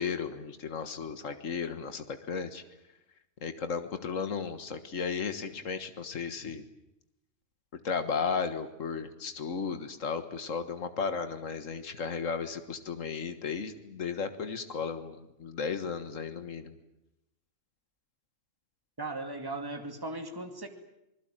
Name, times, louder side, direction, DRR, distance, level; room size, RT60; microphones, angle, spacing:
voice 1, 0.0-2.6 3.4-6.7 7.8-16.7, left 5 dB, 85° left, 10 dB, 1.9 m, -34 dB
voice 2, 19.0-20.7, right 2 dB, 15° right, 6 dB, 2.4 m, -37 dB
27.0 x 20.5 x 9.0 m, 0.90 s
omnidirectional pair, 1.3 m